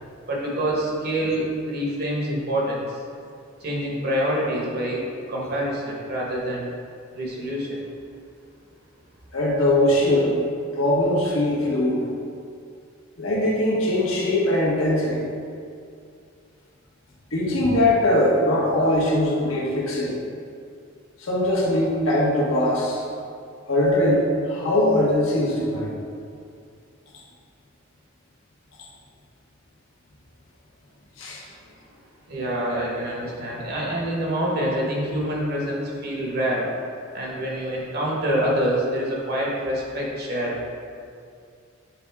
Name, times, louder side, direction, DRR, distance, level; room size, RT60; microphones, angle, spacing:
voice 1, 0.3-3.0 3.6-6.7 7.1-7.8 32.3-36.7 37.1-40.7, equal, 50° right, -4 dB, 1.4 m, -26 dB
voice 2, 9.3-10.3 10.7-12.0 13.2-15.2 17.3-20.2 21.2-23.1 23.7-25.9 31.2-31.4, left 1 dB, 70° left, -5 dB, 1.5 m, -21 dB
7.4 x 4.3 x 3.6 m, 2.4 s
head